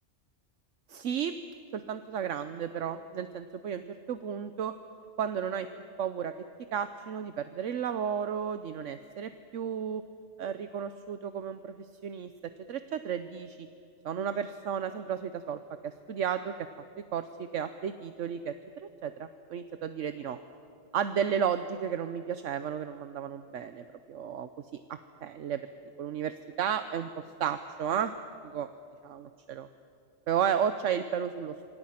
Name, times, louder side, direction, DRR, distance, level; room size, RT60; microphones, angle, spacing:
voice 1, 0.9-1.3 1.7-4.7 5.2-5.7 6.0-6.3 6.7-10.0 10.4-11.7 12.0-12.3 12.7-13.7 14.0-16.5 17.1-17.2 17.5-18.5 19.0-20.4 20.9-24.5 25.2-25.6 26.0-27.1 27.4-28.1 28.4-28.7 29.0-29.7 30.3-31.6, right 8 dB, 75° right, 10 dB, 1.2 m, -33 dB
27.0 x 25.5 x 5.8 m, 2.7 s
omnidirectional pair, 1.3 m